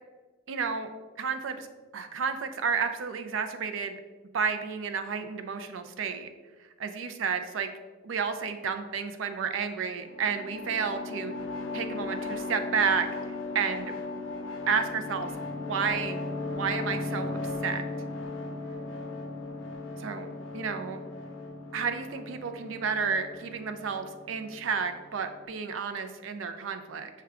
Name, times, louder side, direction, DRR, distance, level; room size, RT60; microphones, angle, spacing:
voice 1, 0.5-0.9 1.2-1.7 1.9-4.0 4.3-6.3 6.8-7.7 8.0-11.3 11.7-13.1 13.5-13.9 14.7-15.3 15.7-16.2 16.6-17.8 20.0-21.0 21.7-27.1, right 6 dB, 75° right, 8 dB, 0.4 m, -31 dB
sound 1, 10.0-25.4, left 3 dB, 80° left, 0.6 m, -37 dB
5.8 x 2.2 x 3.6 m, 1.3 s
head